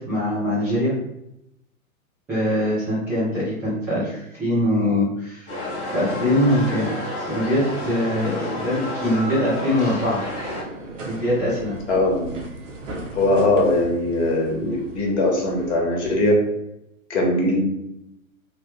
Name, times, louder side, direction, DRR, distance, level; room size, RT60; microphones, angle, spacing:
voice 1, 0.1-0.9 2.3-5.5 5.9-6.9 7.3-10.2 11.1-11.7, left 1 dB, 5° right, -13 dB, 0.4 m, -22 dB
sound 1, 5.5-10.6, left 1 dB, 20° left, 0.8 m, -30 dB
sound 2, 9.7-15.8, right 2 dB, 60° right, 1.0 m, -38 dB
voice 2, 11.9-12.3 13.1-16.4 17.1-17.6, left 1 dB, 55° left, 0 dB, 1.2 m, -20 dB
3.3 x 2.1 x 3.2 m, 0.83 s
figure-of-eight pair, 110°, 42 cm